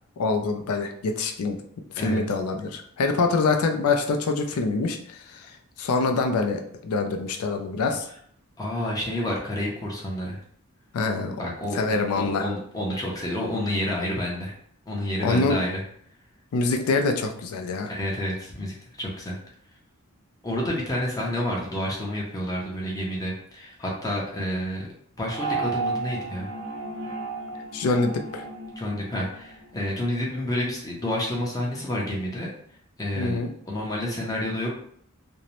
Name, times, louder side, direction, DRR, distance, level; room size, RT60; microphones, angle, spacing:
voice 1, 0.2-1.6 1.9-8.1 10.9-11.4 11.7-12.5 15.2-15.6 16.5-17.9 27.7-28.5 33.2-33.5, left 3 dB, 80° left, 5 dB, 0.4 m, -25 dB
voice 2, 8.6-10.4 11.4-14.5 14.9-15.8 17.9-19.4 20.4-24.9 25.2-26.5 28.8-32.5 33.0-33.4 33.7-34.7, left 1 dB, 15° left, -3 dB, 0.5 m, -29 dB
sound 1, 25.3-29.9, right 4 dB, 65° right, 0.6 m, -33 dB
2.6 x 2.0 x 2.9 m, 0.64 s
head